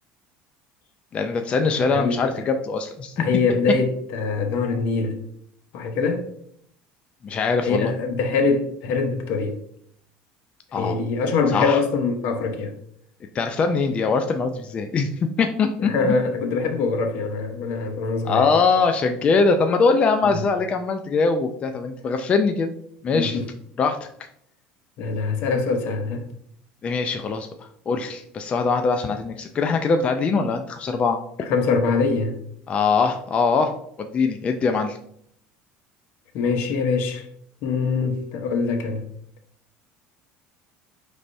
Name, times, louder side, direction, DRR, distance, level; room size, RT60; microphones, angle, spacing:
voice 1, 1.1-3.2 7.2-7.9 10.7-11.0 11.5-11.8 13.3-16.1 18.2-22.7 23.0-23.4 23.8-24.0 26.8-31.2 32.7-33.7 34.0-35.0, left 4 dB, 30° left, 0.3 m, -22 dB
voice 2, 1.9-2.2 3.2-5.2 5.7-6.2 7.6-9.6 10.8-12.7 15.8-18.5 20.3-20.4 23.1-23.4 25.0-26.2 31.4-32.4 36.3-37.3 37.6-39.0, left 4 dB, 65° left, 0.7 m, -23 dB
5.1 x 3.3 x 2.6 m
supercardioid pair, 120°, 4 cm